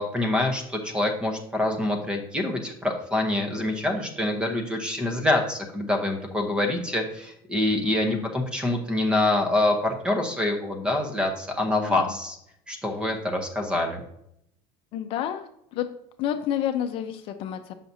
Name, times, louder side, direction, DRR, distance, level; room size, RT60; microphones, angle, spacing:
voice 1, 0.0-12.4 12.7-14.0, left 2 dB, 10° right, 4 dB, 0.9 m, -26 dB
voice 2, 7.8-8.3 11.8-12.1 14.9-15.9 16.2-17.7, left 10 dB, 50° left, 7 dB, 0.5 m, -30 dB
7.0 x 5.8 x 2.7 m, 0.75 s
cardioid pair, 145°, 12 cm